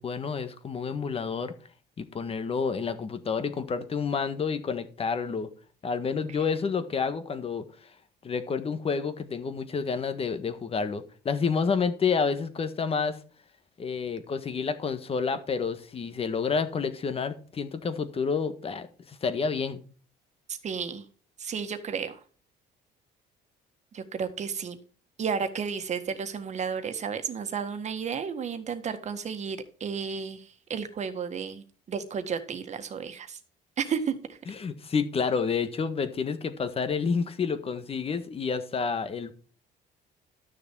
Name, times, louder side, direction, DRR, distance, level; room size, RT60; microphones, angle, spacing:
voice 1, 0.0-1.5 2.0-5.5 5.8-7.7 8.2-13.2 13.8-19.8 34.5-39.3, left 5 dB, 35° left, 1.5 m, -29 dB
voice 2, 20.5-21.0 21.4-22.2 23.9-24.8 25.2-30.4 30.7-33.4 33.8-34.4, right 6 dB, 45° right, 1.7 m, -32 dB
12.5 x 6.6 x 4.7 m
cardioid pair, 110°, 17 cm